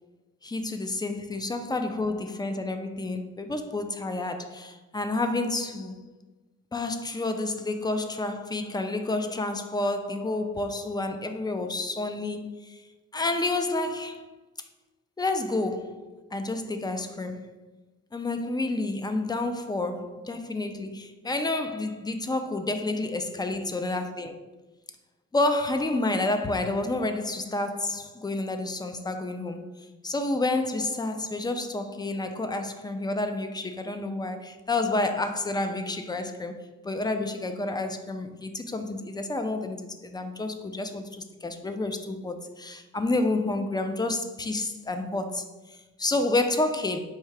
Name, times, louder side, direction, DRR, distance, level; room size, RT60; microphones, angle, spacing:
voice 1, 0.4-6.0 6.7-12.8 13.1-14.3 15.2-17.6 18.1-24.4 25.3-47.0, left 2 dB, 15° left, 0.3 m, -29 dB
4.6 x 2.7 x 3.2 m
cardioid pair, 90°, 30 cm